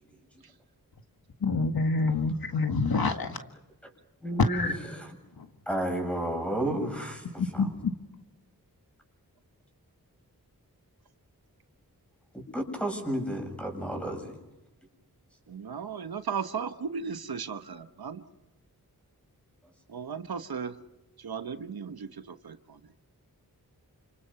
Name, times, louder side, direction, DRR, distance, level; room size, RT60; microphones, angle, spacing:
voice 1, 1.4-3.4 4.4-4.8 5.4-5.5 7.4-7.9, left 3 dB, 80° left, 6 dB, 1.8 m, -27 dB
voice 2, 4.2-4.7 5.7-7.7 12.3-14.3, right 1 dB, 5° left, 3 dB, 7.6 m, -31 dB
voice 3, 15.5-18.2 19.9-20.7 21.2-22.8, right 6 dB, 80° right, 9 dB, 1.2 m, -36 dB
29.5 x 27.5 x 5.8 m, 0.96 s
wide cardioid pair, 80°, 36 cm